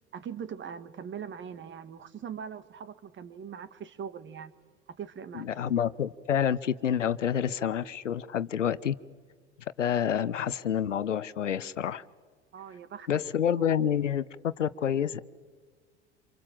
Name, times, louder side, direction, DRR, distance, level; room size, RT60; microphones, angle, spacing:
voice 1, 0.1-4.5 4.9-5.5 12.5-13.2, right 7 dB, 30° right, 14 dB, 1.7 m, -41 dB
voice 2, 5.3-8.9 9.8-12.0 13.1-15.2, left 9 dB, 85° left, 17 dB, 0.9 m, -28 dB
28.0 x 26.5 x 7.6 m, 1.5 s
hypercardioid pair, 80°, 36 cm